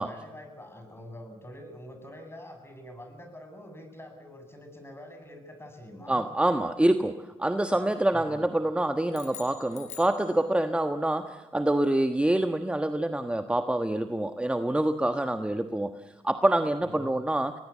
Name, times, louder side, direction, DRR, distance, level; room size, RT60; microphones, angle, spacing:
voice 1, 0.0-6.2 8.1-8.4 16.8-17.2, left 1 dB, 20° left, 6 dB, 7.9 m, -45 dB
voice 2, 6.1-17.5, right 1 dB, 10° right, 8 dB, 1.3 m, -26 dB
sound 1, 9.1-10.9, left 7 dB, 60° left, 3.0 m, -46 dB
24.5 x 19.5 x 8.4 m, 1.1 s
supercardioid pair, 60°, 13 cm